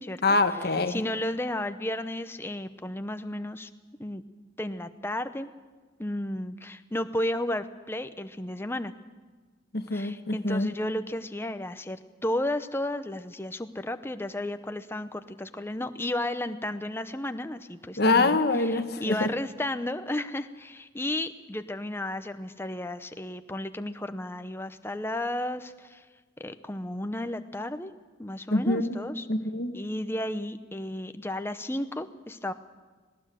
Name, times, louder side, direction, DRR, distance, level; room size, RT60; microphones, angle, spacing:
voice 1, 0.2-1.0 9.7-10.7 18.0-19.3 28.5-29.0 29.3-29.7, left 2 dB, 55° left, 8 dB, 1.3 m, -25 dB
voice 2, 0.9-3.7 4.0-4.2 4.6-5.5 6.0-8.9 9.9-26.0 26.4-27.9 28.2-29.3 29.7-32.5, left 1 dB, 10° left, 10 dB, 0.8 m, -33 dB
19.0 x 18.0 x 7.7 m, 1.4 s
head